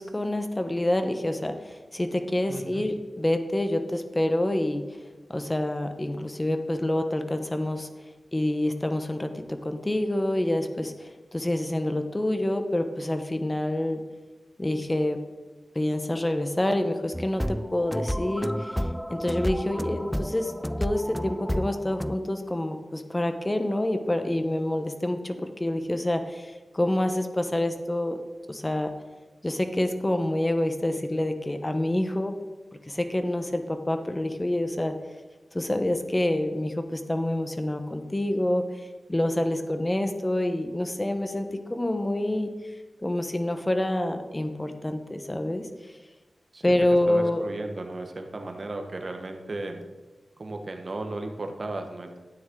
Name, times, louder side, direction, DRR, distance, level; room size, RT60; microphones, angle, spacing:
voice 1, 0.0-4.8 5.3-7.9 8.3-14.0 14.6-15.2 15.7-20.5 20.8-28.2 28.5-28.9 29.4-32.4 32.9-35.0 35.5-38.8 39.1-42.5 43.0-45.7 46.6-47.4, left 1 dB, 20° left, 7 dB, 1.1 m, -27 dB
voice 2, 2.5-2.9 46.5-46.7 47.1-49.8 50.4-52.2, right 2 dB, 50° right, 4 dB, 1.3 m, -35 dB
sound 1, 17.1-22.2, equal, ahead, 0.3 m, -31 dB
12.5 x 9.5 x 3.9 m, 1.2 s
wide cardioid pair, 80°, 0 cm